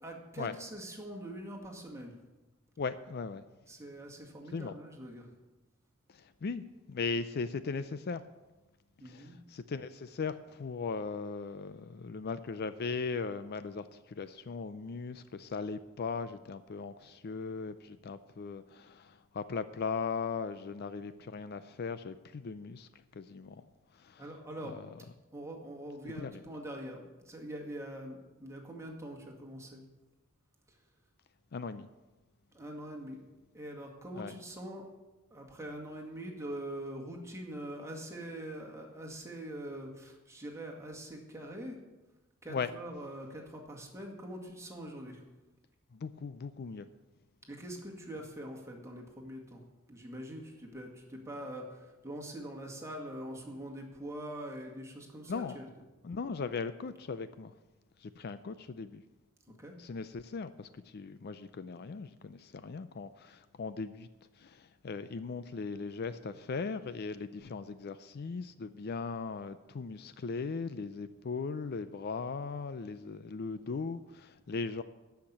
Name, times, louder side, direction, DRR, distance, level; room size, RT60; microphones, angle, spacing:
voice 1, 0.0-2.2 3.7-5.3 9.0-9.4 24.2-24.8 25.3-29.8 30.7-30.8 32.5-33.2 33.5-34.9 35.3-41.8 42.4-45.2 47.5-55.6 59.6-59.8, right 1 dB, 15° right, -1 dB, 2.0 m, -43 dB
voice 2, 2.8-3.4 4.5-4.8 6.1-8.2 9.0-23.6 23.9-24.2 24.7-24.9 26.2-26.3 31.5-31.9 34.2-34.3 42.5-42.7 45.9-46.9 55.3-55.6 56.0-57.5 58.0-59.0 59.5-64.1 64.3-74.8, left 4 dB, 50° left, 13 dB, 0.4 m, -38 dB
13.0 x 5.9 x 8.7 m, 1.1 s
head